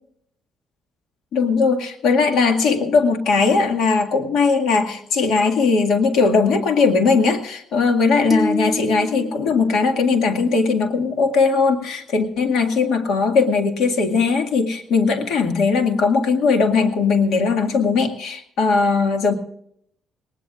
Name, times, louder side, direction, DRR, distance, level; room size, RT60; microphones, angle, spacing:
voice 1, 1.3-19.3, left 4 dB, 80° left, 5 dB, 2.1 m, -19 dB
sound 1, 8.3-10.7, left 1 dB, 20° left, 3.1 m, -28 dB
20.0 x 19.0 x 2.5 m, 0.72 s
cardioid pair, 90°, 0 cm